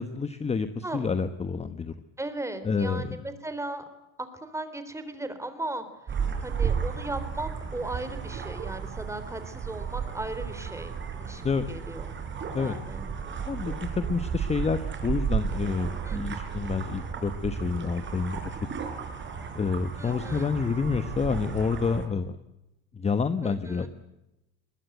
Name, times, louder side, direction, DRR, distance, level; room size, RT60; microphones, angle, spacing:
voice 1, 0.0-1.9 2.6-3.2 11.4-11.7 12.5-12.7 13.5-18.4 19.5-22.4 22.9-23.9, left 5 dB, 15° left, 11 dB, 1.1 m, -28 dB
voice 2, 2.2-3.8 4.2-12.2 12.6-13.1 16.0-16.4 20.0-20.5 23.4-23.9, right 2 dB, 10° right, 10 dB, 3.6 m, -37 dB
sound 1, 6.1-22.1, right 7 dB, 30° right, 4.7 m, -33 dB
21.5 x 21.5 x 9.2 m, 0.94 s
supercardioid pair, 120°, 37 cm